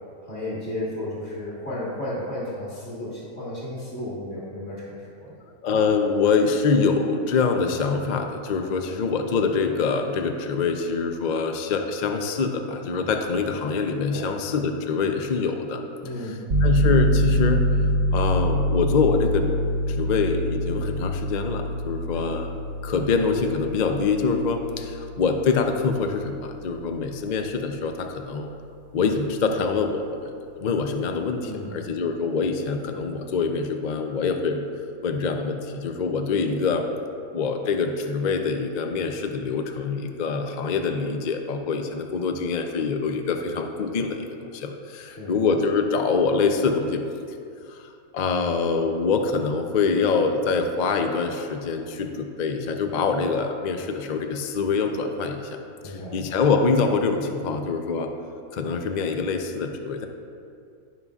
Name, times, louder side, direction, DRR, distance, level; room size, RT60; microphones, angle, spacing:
voice 1, 0.2-5.3 14.1-14.3 16.0-16.4 22.1-22.2 31.4-31.7 45.1-45.3 55.8-56.2, left 1 dB, 40° left, -8 dB, 1.9 m, -33 dB
voice 2, 5.6-15.8 16.1-17.7 18.1-19.5 19.9-22.5 22.8-28.5 28.9-30.3 30.6-34.6 35.0-36.9 37.3-47.0 47.7-47.9 48.1-55.6 55.8-58.1 58.5-60.1, left 4 dB, 75° left, 5 dB, 0.4 m, -25 dB
sound 1, 16.5-27.0, equal, 65° right, 1.3 m, -25 dB
15.5 x 5.5 x 2.4 m, 2.4 s
omnidirectional pair, 1.6 m